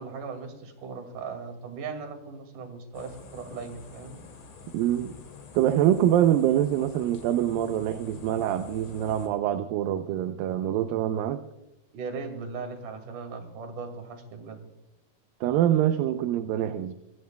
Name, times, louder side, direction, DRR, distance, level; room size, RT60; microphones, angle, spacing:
voice 1, 0.0-4.2 11.9-14.7, right 5 dB, 60° right, 6 dB, 3.7 m, -38 dB
sound 1, 2.9-9.3, left 4 dB, 55° left, 3.4 m, -47 dB
voice 2, 4.7-5.1 5.5-11.4 15.4-16.9, right 11 dB, 80° right, 9 dB, 2.4 m, -25 dB
25.5 x 16.0 x 2.3 m, 0.95 s
omnidirectional pair, 4.1 m